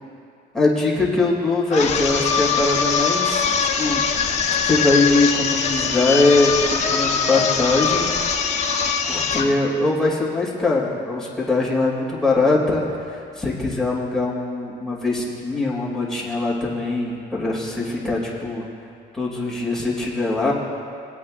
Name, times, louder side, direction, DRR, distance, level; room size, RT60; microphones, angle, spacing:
voice 1, 0.5-3.4 3.8-4.0 4.6-8.1 9.1-18.6 19.1-20.5, left 2 dB, 5° left, -6 dB, 2.6 m, -21 dB
sound 1, 1.7-9.5, left 6 dB, 40° left, 1.2 m, -22 dB
22.0 x 8.4 x 2.5 m, 2.4 s
cardioid pair, 110°, 17 cm